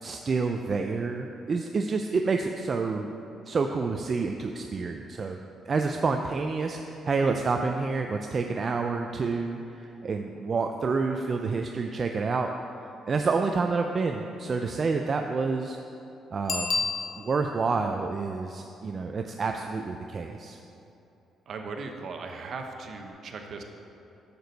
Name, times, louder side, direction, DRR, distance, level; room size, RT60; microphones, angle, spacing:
voice 1, 0.0-3.1 3.5-5.4 5.7-12.5 13.1-15.8 16.3-16.9 17.2-20.6, right 4 dB, 40° right, 4 dB, 0.4 m, -28 dB
Bicycle bell, 16.4-17.6 23.1-23.2, left 4 dB, 45° left, 0.8 m, -30 dB
voice 2, 21.5-23.6, right 4 dB, 60° right, 4 dB, 0.8 m, -38 dB
8.7 x 6.8 x 4.0 m, 2.8 s
cardioid pair, 90°, 0 cm